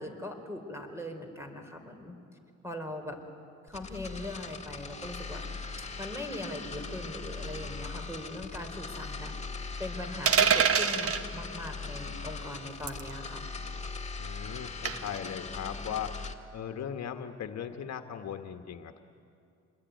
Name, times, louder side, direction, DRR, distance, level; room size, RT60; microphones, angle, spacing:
voice 1, 0.0-2.2 2.6-3.2 3.7-5.4 6.0-13.4, left 1 dB, 10° right, 5 dB, 4.3 m, -40 dB
sound 1, 3.7-16.3, left 4 dB, 20° left, 1.9 m, -40 dB
sound 2, 10.3-11.2 12.9-13.1 14.9-15.2, right 7 dB, 50° right, 1.4 m, -24 dB
voice 2, 14.2-16.1 16.5-19.0, left 8 dB, 60° left, 6 dB, 1.5 m, -38 dB
27.0 x 21.5 x 9.4 m, 2.5 s
cardioid pair, 90°, 30 cm